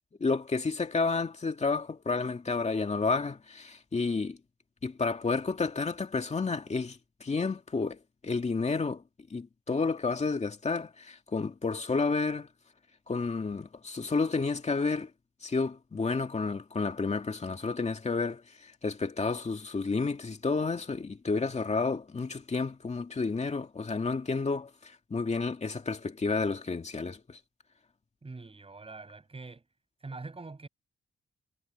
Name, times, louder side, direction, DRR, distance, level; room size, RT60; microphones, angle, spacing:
voice 1, 0.2-4.4 4.8-9.0 9.3-12.5 13.1-15.1 15.4-18.4 18.8-27.4, left 4 dB, 30° left, 2.4 m, -31 dB
voice 2, 28.2-29.6 30.0-30.7, right 3 dB, 25° right, 6.6 m, -44 dB
cardioid pair, 105°, 21 cm